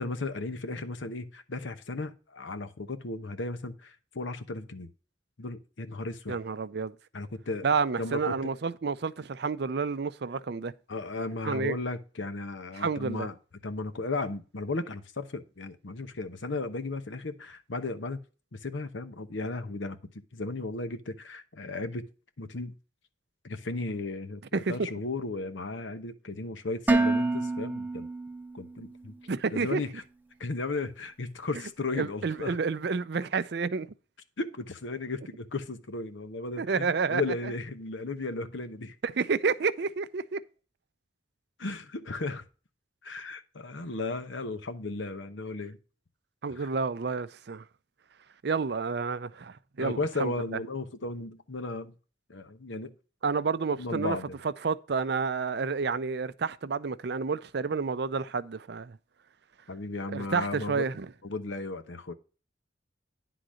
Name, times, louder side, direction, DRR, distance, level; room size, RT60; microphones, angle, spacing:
voice 1, 0.0-4.9 5.4-6.4 7.1-7.6 8.0-8.4 10.9-13.3 13.6-18.2 18.5-20.0 20.3-22.1 22.4-22.8 23.4-28.1 28.5-29.1 29.5-29.9 30.4-32.5 34.4-38.9 41.6-42.4 43.0-45.8 46.5-46.7 49.8-51.9 52.3-52.9 53.8-54.4 59.7-60.8 61.2-62.1, left 3 dB, 85° left, 0.9 m, -35 dB
voice 2, 6.3-6.9 7.6-10.7 11.4-11.8 12.8-13.3 24.5-24.9 29.3-29.8 32.0-33.9 36.6-37.2 39.0-40.4 46.4-47.6 48.4-50.6 53.2-54.2 54.4-59.0 60.1-61.1, right 5 dB, 60° right, 0.5 m, -30 dB
Dishes pots and pans, 26.9-28.9, right 2 dB, 10° right, 0.5 m, -28 dB
10.0 x 3.9 x 6.2 m
head